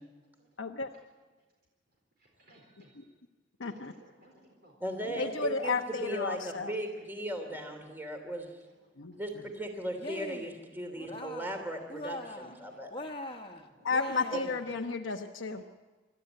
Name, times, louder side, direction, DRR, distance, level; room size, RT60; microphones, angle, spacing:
voice 1, 0.6-0.9 2.9-3.0 3.6-3.9 5.1-6.7 9.0-9.2 13.8-15.6, left 4 dB, 90° left, 3 dB, 1.0 m, -33 dB
voice 2, 2.2-3.1 3.6-4.7 5.4-5.5 5.9-6.0 6.5-6.6 6.9-7.1 7.4-7.5 12.1-12.8 13.3-13.9 15.5-15.6, right 1 dB, 55° right, -1 dB, 4.3 m, -60 dB
voice 3, 4.8-5.7 6.0-8.5 9.2-12.9 14.3-14.4, right 1 dB, 10° right, 4 dB, 3.0 m, -37 dB
Cheering, 9.9-10.6 10.9-11.6 11.9-12.6 12.9-14.7, left 1 dB, 25° left, 1.5 m, -41 dB
27.0 x 13.0 x 9.1 m, 1.3 s
head